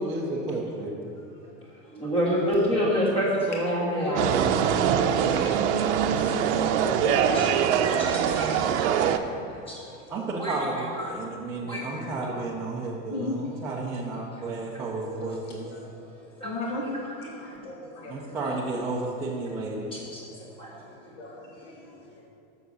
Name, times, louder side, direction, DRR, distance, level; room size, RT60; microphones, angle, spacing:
voice 1, 0.0-0.9 10.1-15.7 18.0-20.1, right 2 dB, 5° right, -6 dB, 0.4 m, -32 dB
voice 2, 1.0-1.5 2.5-2.6 4.0-10.1 11.2-11.7 13.1-13.7 14.1-18.4 19.2-19.3 19.8-22.2, left 1 dB, 70° left, -2 dB, 1.5 m, -39 dB
voice 3, 1.9-4.3 4.9-5.5 5.8-6.7 7.3-7.5 7.9-9.0 9.7-9.8 10.4-11.1 11.6-12.4 16.4-16.5 19.9-20.2 20.6-20.7, equal, 15° left, -5 dB, 1.8 m, -29 dB
sound 1, 4.2-9.2, right 8 dB, 65° right, 0.6 m, -23 dB
7.0 x 7.0 x 6.3 m, 2.4 s
supercardioid pair, 170°, 38 cm